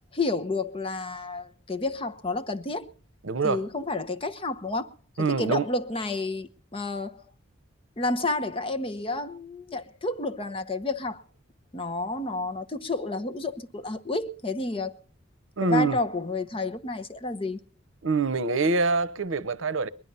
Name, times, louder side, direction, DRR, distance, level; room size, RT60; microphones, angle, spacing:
voice 1, 0.1-2.9 3.4-4.9 5.2-7.2 8.0-11.2 11.7-15.0 15.6-17.6, left 3 dB, 25° left, 0.8 m, -30 dB
voice 2, 3.2-3.6 5.2-5.6 15.6-16.0 18.0-19.9, right 4 dB, 75° right, 0.8 m, -25 dB
20.5 x 11.0 x 5.5 m
head